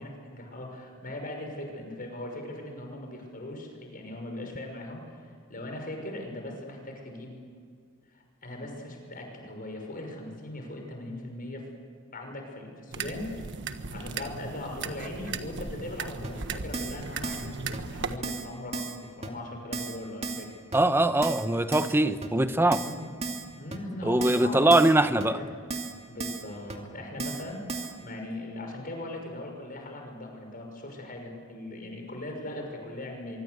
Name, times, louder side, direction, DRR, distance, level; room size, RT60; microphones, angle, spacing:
voice 1, 0.0-7.4 8.1-11.6 12.1-13.3 13.9-20.5 22.8-25.5 26.1-33.4, left 1 dB, 40° left, 3 dB, 6.1 m, -39 dB
sound 1, 12.9-18.2, right 4 dB, 60° right, 1.4 m, -37 dB
Keyboard (musical), 16.2-16.3 16.7-17.0 17.2-17.5 17.7-17.8 18.2-18.5 18.7-19.0 19.2-19.3 19.7-20.0 20.2-20.4 20.7-20.8 21.2-21.4 21.7-21.9 22.2-22.3 22.7-22.9 23.2-23.4 23.7-23.8 24.2-24.4 24.7-24.9 25.2-25.3 25.7-25.9 26.2-26.4 26.7-26.8 27.2-27.4 27.7-27.9, right 3 dB, 30° right, 2.5 m, -34 dB
voice 2, 20.7-22.8 24.0-25.4, right 1 dB, 10° right, 11 dB, 0.9 m, -22 dB
24.5 x 24.0 x 8.1 m, 2.1 s
head